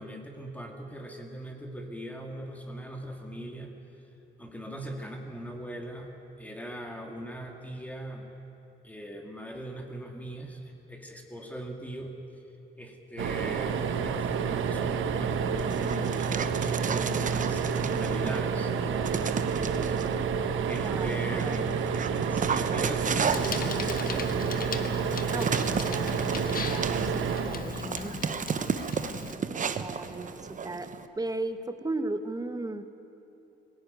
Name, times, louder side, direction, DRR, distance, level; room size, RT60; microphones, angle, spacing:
voice 1, 0.0-3.7 4.4-6.1 6.4-8.3 8.8-12.1 12.8-20.0 20.7-21.9 22.3-23.8 28.9-29.6, equal, 5° left, 2 dB, 2.3 m, -40 dB
sound 1, 13.2-28.4 30.1-30.3 30.6-30.7, right 6 dB, 80° right, 1.2 m, -29 dB
Dog, 15.6-18.5 19.0-20.1 20.7-31.1, right 6 dB, 40° right, 0.9 m, -34 dB
voice 2, 20.8-21.6 25.3-28.3 29.8-30.9 31.2-32.8, right 2 dB, 20° right, 9 dB, 1.3 m, -36 dB
Bicycle, 23.2-29.3, left 5 dB, 45° left, 1.5 m, -38 dB
19.0 x 17.0 x 9.3 m, 3.0 s
cardioid pair, 90°, 20 cm